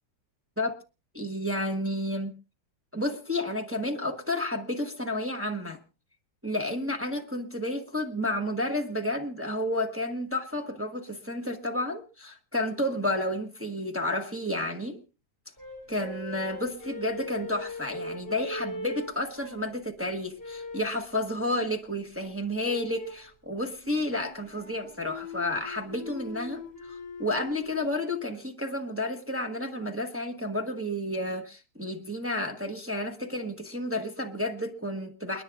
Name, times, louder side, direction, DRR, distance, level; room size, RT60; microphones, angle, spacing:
voice 1, 1.1-2.3 2.9-5.8 6.4-15.0 15.9-26.6 26.9-35.4, left 1 dB, 10° right, 3 dB, 1.0 m, -31 dB
sound 1, 15.6-19.8 20.4-21.0 22.6-23.3 23.8-27.8, left 2 dB, 10° left, 5.3 m, -40 dB
30.0 x 9.9 x 2.5 m, 0.30 s
omnidirectional pair, 1.9 m